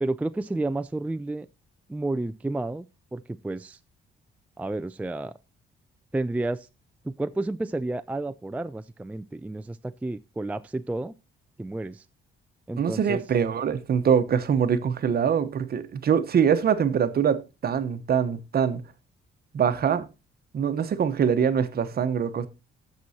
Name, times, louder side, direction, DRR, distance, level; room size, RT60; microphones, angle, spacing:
voice 1, 0.0-1.5 1.9-2.9 3.1-3.8 4.6-5.3 6.1-6.7 7.0-11.1 11.6-12.0 12.7-13.2, right 2 dB, 5° right, 0.4 m, -31 dB
voice 2, 12.8-18.8 19.5-20.1 20.5-22.5, right 7 dB, 50° right, 1.0 m, -23 dB
15.0 x 6.1 x 2.8 m
cardioid pair, 90°, 20 cm